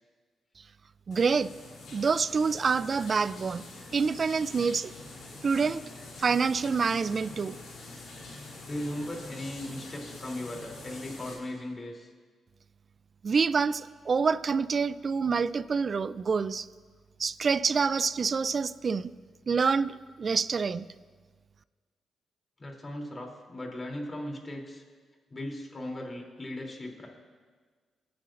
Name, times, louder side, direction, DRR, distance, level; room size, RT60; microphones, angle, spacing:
sound 1, 1.1-11.3, left 2 dB, 75° left, 3.2 m, -45 dB
voice 1, 1.1-1.5 1.9-3.7 3.9-4.9 5.4-5.8 6.2-7.6 13.2-16.7 17.2-19.1 19.5-20.8, right 5 dB, 50° right, 17 dB, 0.4 m, -27 dB
voice 2, 8.7-12.1 22.6-24.8 25.3-27.1, left 1 dB, 35° left, 0 dB, 3.1 m, -37 dB
23.5 x 9.4 x 2.5 m, 1.5 s
supercardioid pair, 55°, 0 cm